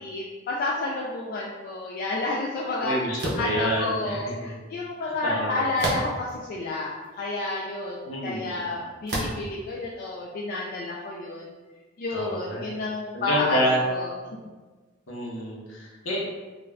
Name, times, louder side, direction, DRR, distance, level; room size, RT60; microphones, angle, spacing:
voice 1, 0.0-2.9 3.4-11.4 12.0-13.6 13.9-14.1, left 2 dB, 50° left, -4 dB, 0.3 m, -30 dB
voice 2, 2.8-4.5 5.0-5.6 8.1-8.6 12.1-12.7 13.1-13.8 15.1-16.2, equal, 75° left, -3 dB, 0.8 m, -28 dB
sound 1, 3.2-3.5 5.8-6.3 7.0-7.1 9.1-9.5, right 1 dB, 60° right, 0.6 m, -29 dB
2.3 x 2.3 x 3.2 m, 1.3 s
head